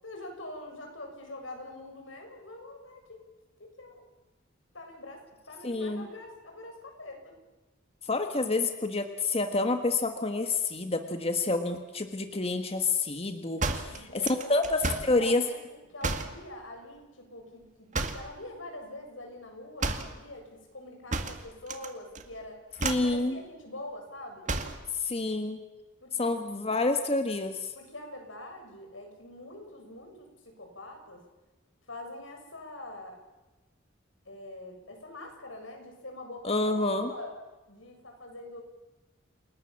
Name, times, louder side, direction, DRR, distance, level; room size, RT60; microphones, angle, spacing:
voice 1, 0.0-3.2 3.6-4.1 4.7-7.4 13.8-22.6 23.0-24.5 26.0-26.3 27.8-31.2 31.9-33.2 34.3-37.3 37.7-38.6, left 1 dB, 90° left, 3 dB, 7.1 m, -44 dB
voice 2, 5.6-6.1 8.0-15.4 22.8-23.4 25.0-25.6 26.1-27.7 36.4-37.1, left 3 dB, 30° left, 7 dB, 1.5 m, -28 dB
sound 1, 13.6-15.2 16.0-16.4 17.9-18.4 19.8-20.2 21.1-21.9 22.1-22.4 22.8-23.2 24.5-24.8, right 3 dB, 40° right, 2.2 m, -32 dB
29.0 x 19.0 x 7.4 m, 1.1 s
head